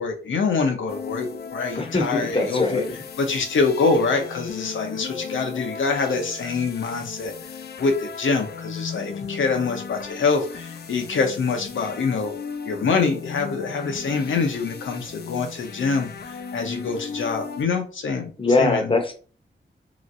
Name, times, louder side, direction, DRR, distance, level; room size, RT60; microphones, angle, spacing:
voice 1, 0.0-2.8 3.2-7.3 7.8-12.3 12.7-18.3 18.6-18.9, left 4 dB, 80° left, 4 dB, 0.8 m, -25 dB
sound 1, 0.9-17.6, left 6 dB, 55° left, 0.5 m, -36 dB
voice 2, 1.8-2.9 18.4-19.1, left 2 dB, 25° left, 5 dB, 0.8 m, -22 dB
3.1 x 3.0 x 2.6 m, 0.38 s
cardioid pair, 70°, 20 cm